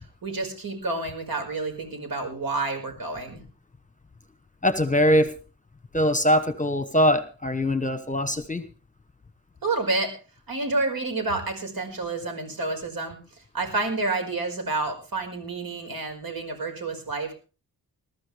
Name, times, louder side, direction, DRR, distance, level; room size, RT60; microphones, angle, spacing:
voice 1, 0.2-3.4 9.6-10.1 10.5-13.2 13.5-17.4, right 3 dB, 65° right, 5 dB, 5.3 m, -29 dB
voice 2, 4.6-5.3 5.9-8.6, equal, 20° left, 11 dB, 1.2 m, -22 dB
21.0 x 13.5 x 3.4 m, 0.34 s
wide cardioid pair, 100°, 38 cm